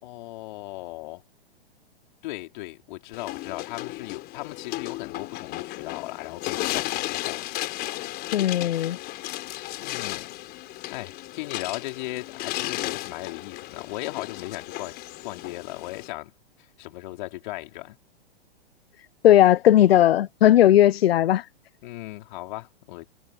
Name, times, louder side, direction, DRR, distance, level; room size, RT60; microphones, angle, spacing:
voice 1, 0.0-1.2 2.2-7.4 9.8-10.3 10.9-14.9 15.2-16.3 16.8-18.0 21.8-23.1, left 19 dB, 50° left, 4.7 m, -37 dB
sound 1, 3.1-16.1, left 17 dB, 30° left, 3.9 m, -34 dB
voice 2, 8.3-9.0 19.2-21.5, left 12 dB, 70° left, 0.7 m, -17 dB
hypercardioid pair, 125°, 31 cm